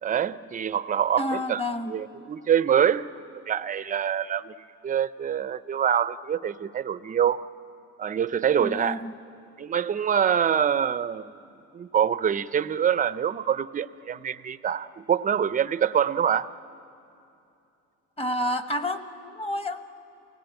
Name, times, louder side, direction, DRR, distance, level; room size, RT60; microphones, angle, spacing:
voice 1, 0.0-1.6 1.9-3.1 3.5-4.5 4.8-7.4 8.0-9.0 9.6-11.3 11.7-16.5, right 8 dB, 25° right, 15 dB, 0.5 m, -25 dB
voice 2, 1.2-1.9 8.6-9.1 18.2-19.8, left 1 dB, 15° left, 9 dB, 1.1 m, -29 dB
28.0 x 19.0 x 9.0 m, 2.7 s
cardioid pair, 130°, 34 cm